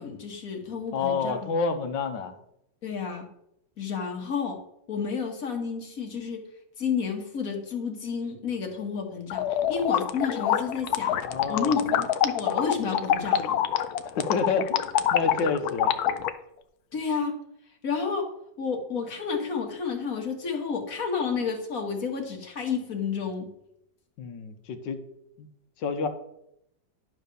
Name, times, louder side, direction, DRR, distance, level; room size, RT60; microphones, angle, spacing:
voice 1, 0.0-1.5 2.8-3.3 3.8-4.6 4.9-6.4 6.8-11.2 11.5-13.6 16.9-17.3 17.8-18.3 18.6-23.5, left 5 dB, 50° left, 3 dB, 1.7 m, -30 dB
voice 2, 0.9-2.3 11.2-11.9 14.2-15.9 24.2-25.0 25.4-25.5 25.8-26.1, left 4 dB, 85° left, 8 dB, 1.6 m, -29 dB
sound 1, 9.3-16.3, left 10 dB, 70° left, 1.0 m, -26 dB
11.0 x 3.8 x 6.8 m, 0.78 s
omnidirectional pair, 1.9 m